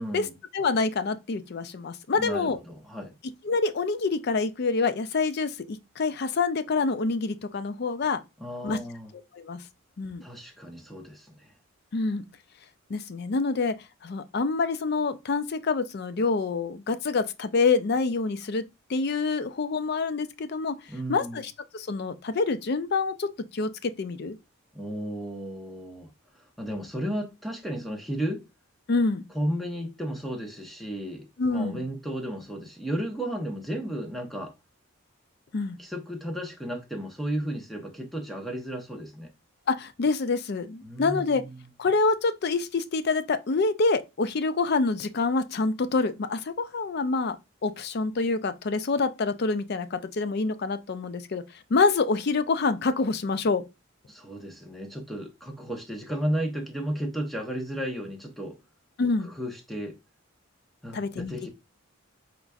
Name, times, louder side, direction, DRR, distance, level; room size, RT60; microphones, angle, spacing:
voice 1, 0.0-0.3 2.2-3.1 8.4-9.1 10.2-11.5 20.9-21.4 24.7-28.4 29.3-34.5 35.8-39.3 40.8-41.7 54.1-58.6 59.2-60.0 60.8-61.5, equal, ahead, 0.9 m, -34 dB
voice 2, 0.5-2.6 3.4-8.2 8.6-8.8 9.3-9.6 10.0-10.2 11.9-12.2 12.9-13.8 14.0-18.6 18.9-20.8 21.1-24.4 28.9-29.2 31.4-31.8 35.5-35.8 39.7-41.4 41.8-47.4 47.6-51.4 51.7-53.6 59.0-59.3 60.9-61.3, left 4 dB, 50° left, 0.4 m, -26 dB
4.5 x 4.0 x 2.3 m
head